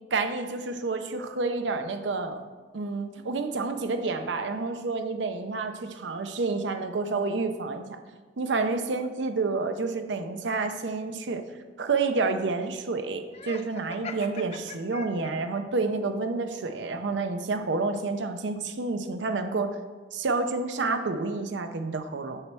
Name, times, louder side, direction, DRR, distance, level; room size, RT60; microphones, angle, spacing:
voice 1, 0.1-2.4 2.7-8.0 8.4-11.4 11.8-19.7 20.1-22.4, right 3 dB, 85° right, 7 dB, 0.6 m, -29 dB
Laughter, 13.3-15.6, left 5 dB, 35° left, 0.4 m, -42 dB
6.5 x 6.0 x 4.2 m, 1.4 s
head